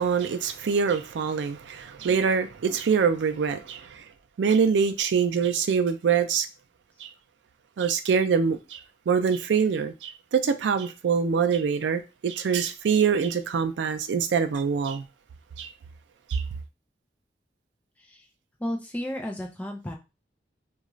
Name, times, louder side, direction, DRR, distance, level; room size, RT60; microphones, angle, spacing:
voice 1, 0.0-4.0 4.4-6.5 7.0-7.1 7.8-8.8 9.1-15.0 15.6-15.7 16.3-16.4, right 6 dB, 90° right, 0.4 m, -24 dB
voice 2, 18.6-19.9, equal, 10° left, 0.4 m, -32 dB
2.4 x 2.3 x 3.0 m
head